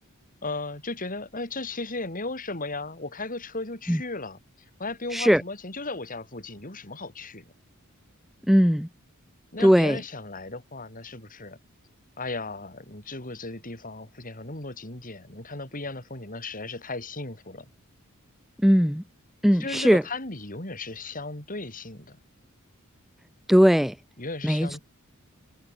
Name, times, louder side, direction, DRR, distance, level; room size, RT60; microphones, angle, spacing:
voice 1, 0.4-4.4 4.8-7.5 9.5-11.6 12.2-17.7 19.5-22.2 24.2-24.8, left 3 dB, 40° left, 5.8 m, -36 dB
voice 2, 8.5-8.9 9.6-10.0 18.6-19.0 19.4-20.0 23.5-23.9 24.4-24.8, equal, ahead, 0.6 m, -19 dB
head